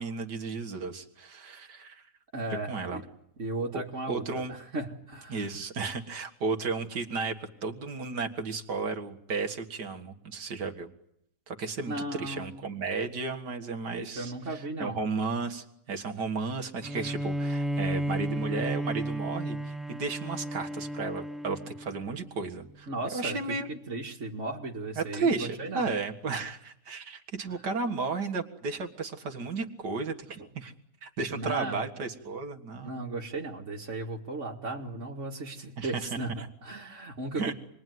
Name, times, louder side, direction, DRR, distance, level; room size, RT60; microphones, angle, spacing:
voice 1, 0.0-2.1 2.7-3.0 3.7-3.8 4.1-4.5 5.3-7.4 7.6-10.9 11.5-23.7 25.0-30.7 31.0-33.0 35.8-36.1 36.4-36.5 37.4-37.5, right 4 dB, 70° right, 4 dB, 2.4 m, -34 dB
voice 2, 2.3-3.0 3.4-5.5 11.9-12.7 13.9-15.0 22.9-25.9 31.3-31.8 32.8-37.5, right 2 dB, 45° right, -3 dB, 2.4 m, -36 dB
Bowed string instrument, 16.8-22.3, right 1 dB, ahead, 0.4 m, -33 dB
27.5 x 21.5 x 9.5 m, 0.77 s
omnidirectional pair, 1.8 m